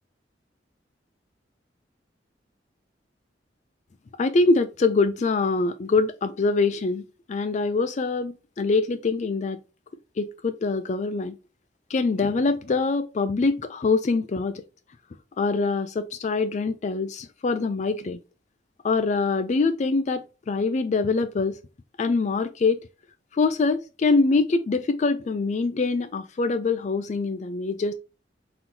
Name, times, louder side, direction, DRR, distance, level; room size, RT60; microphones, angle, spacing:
voice 1, 4.2-7.0 7.3-9.6 10.2-11.4 11.9-14.6 15.4-18.2 18.8-21.6 22.0-22.8 23.3-27.9, left 3 dB, 40° left, 0.4 m, -24 dB
4.3 x 3.8 x 2.7 m
head